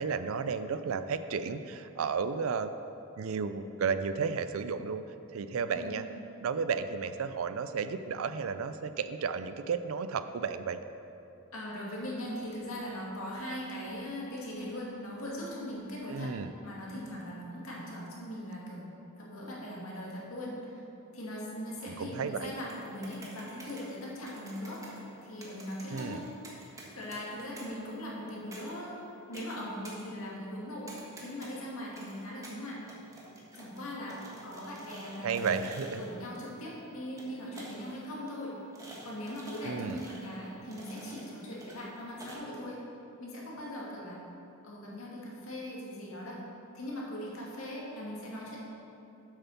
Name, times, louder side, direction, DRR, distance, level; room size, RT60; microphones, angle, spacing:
voice 1, 0.0-2.7 3.2-5.0 5.3-6.0 6.4-10.8 16.1-16.5 21.8-22.5 25.9-26.2 35.2-36.0 39.6-40.0, right 5 dB, 75° right, 11 dB, 0.4 m, -33 dB
voice 2, 11.5-16.3 16.6-18.9 19.1-20.8 21.1-24.9 25.2-26.3 26.5-30.9 31.2-32.8 33.5-35.6 36.0-38.5 39.0-42.8 43.2-44.2 44.6-46.4 46.7-48.6, left 1 dB, 75° left, -5 dB, 2.3 m, -40 dB
sound 1, 22.6-42.3, right 1 dB, 15° right, 1.3 m, -51 dB
8.1 x 6.9 x 5.8 m, 3.0 s
head